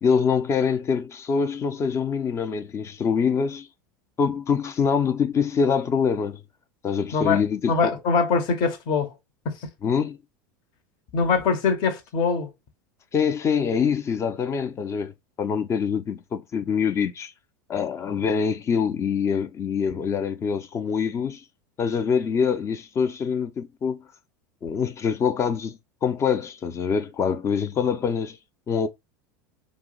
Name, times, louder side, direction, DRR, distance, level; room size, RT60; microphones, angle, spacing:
voice 1, 0.0-3.7 4.2-6.4 6.8-7.7 9.8-10.2 13.1-17.3 17.7-21.4 21.8-24.0 24.6-28.4 28.7-28.9, left 6 dB, 30° left, 0.5 m, -24 dB
voice 2, 7.7-9.1 9.4-9.7 11.1-12.5, left 5 dB, 50° left, 0.8 m, -23 dB
2.7 x 2.0 x 3.8 m
hypercardioid pair, 90°, 10 cm